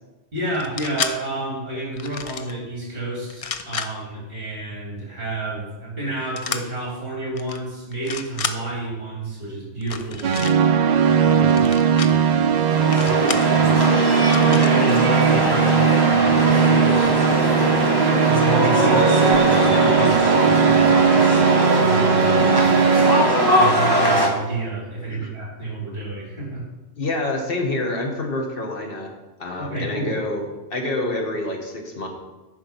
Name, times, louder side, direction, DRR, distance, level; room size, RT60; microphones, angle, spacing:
voice 1, 0.3-22.8 23.5-26.7 29.5-30.2, right 2 dB, 45° right, -5 dB, 3.7 m, -31 dB
sound 1, 0.5-1.1 2.0-2.5 3.3-3.9 6.4-6.6 7.3-7.6 7.9-8.6 9.8-10.5 11.5-12.1 12.9-13.5 14.3-14.7, left 6 dB, 65° left, 0.3 m, -30 dB
sound 2, 10.2-23.2, right 7 dB, 75° right, 0.4 m, -18 dB
sound 3, 12.6-24.3, right 1 dB, 20° right, 1.4 m, -20 dB
voice 2, 27.0-29.1 29.4-32.1, left 2 dB, 50° left, 1 dB, 1.5 m, -27 dB
10.0 x 4.5 x 5.8 m, 1.1 s
omnidirectional pair, 1.3 m